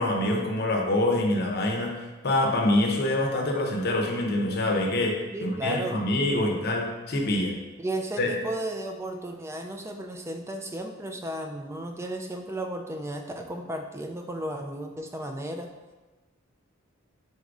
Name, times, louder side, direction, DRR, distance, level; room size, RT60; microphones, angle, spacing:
voice 1, 0.0-7.6 8.2-8.3, left 1 dB, 50° left, 1 dB, 0.7 m, -25 dB
voice 2, 5.3-6.6 7.8-15.7, right 1 dB, 15° right, 4 dB, 0.3 m, -34 dB
4.1 x 2.5 x 4.6 m, 1.2 s
head